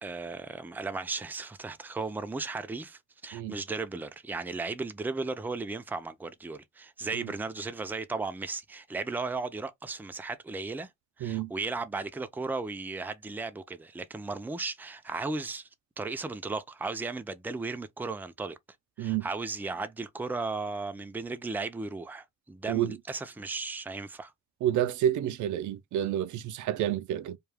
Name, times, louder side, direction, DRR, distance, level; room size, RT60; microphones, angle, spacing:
voice 1, 0.0-10.9 11.2-15.7 16.0-18.6 19.0-24.3, right 3 dB, 5° right, 0.4 m, -35 dB
voice 2, 11.2-11.5 19.0-19.3 22.7-23.0 24.6-27.4, right 11 dB, 75° right, 0.5 m, -29 dB
2.3 x 2.3 x 3.3 m
cardioid pair, 90°, 30 cm